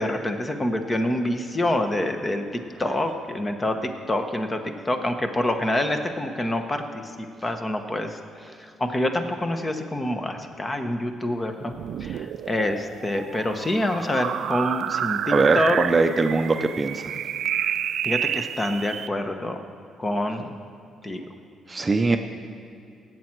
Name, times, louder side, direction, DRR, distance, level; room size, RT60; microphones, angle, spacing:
voice 1, 0.0-4.6 4.8-7.0 7.4-8.2 8.6-15.8 18.0-19.6 20.0-20.5 21.0-21.2 22.1-22.2, left 1 dB, 20° left, 6 dB, 1.0 m, -26 dB
sound 1, 11.7-19.1, right 10 dB, 70° right, 0.3 m, -29 dB
voice 2, 15.3-17.1 21.7-22.2, right 3 dB, 25° right, 6 dB, 0.6 m, -21 dB
17.0 x 7.6 x 4.6 m, 2.5 s
cardioid pair, 90°, 0 cm